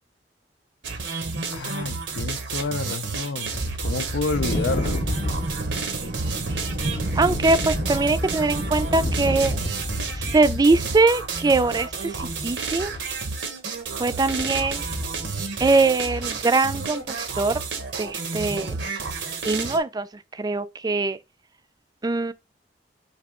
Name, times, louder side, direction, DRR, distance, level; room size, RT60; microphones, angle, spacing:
sound 1, 0.8-19.8, right 4 dB, 90° right, 1.0 m, -31 dB
voice 1, 1.5-5.0, left 4 dB, 90° left, 0.5 m, -29 dB
sound 2, 3.5-5.9 6.3-13.3 14.0-16.0 16.3-16.4 17.0-17.3, left 1 dB, 45° left, 0.7 m, -32 dB
sound 3, 4.3-9.5, right 2 dB, 65° right, 0.7 m, -32 dB
voice 2, 7.2-9.6 10.2-12.9 14.0-14.8 15.6-17.6 18.0-18.8 19.4-20.1 20.3-21.2 22.0-22.3, right 3 dB, 20° right, 0.4 m, -22 dB
4.6 x 2.8 x 3.6 m
head